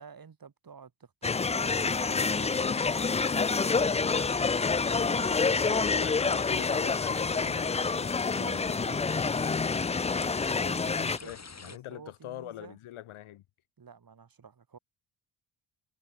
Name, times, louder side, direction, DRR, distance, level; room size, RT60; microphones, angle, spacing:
voice 1, 0.0-2.8 3.4-4.1 5.0-5.9 8.3-9.1 10.5-11.4 11.6-12.8 13.8-14.8, right 6 dB, 45° right, 6.9 m, -50 dB
sound 1, 1.2-11.2, left 4 dB, 15° left, 0.5 m, -27 dB
sound 2, 1.6-11.8, left 4 dB, 30° left, 4.8 m, -46 dB
voice 2, 5.3-8.1 10.9-13.4, left 13 dB, 75° left, 7.2 m, -43 dB
supercardioid pair, 60°, 50 cm